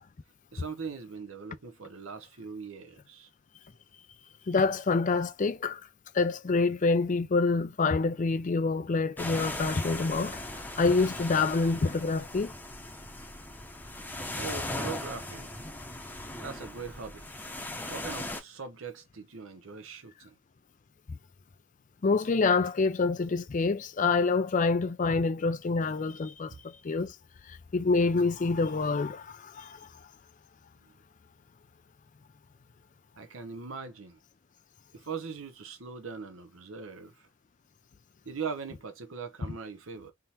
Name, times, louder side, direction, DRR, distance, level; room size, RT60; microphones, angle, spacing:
voice 1, 0.5-3.3 14.3-15.5 16.4-17.3 17.9-20.3 26.5-26.6 33.2-34.2 34.9-37.3 38.3-40.1, right 5 dB, 75° right, 0.8 m, -40 dB
voice 2, 4.5-5.8 6.1-10.4 10.8-12.5 22.0-27.2 27.5-29.9, left 4 dB, 40° left, 0.4 m, -27 dB
sound 1, 9.2-18.4, left 1 dB, 10° left, 0.8 m, -38 dB
3.5 x 2.8 x 4.2 m
head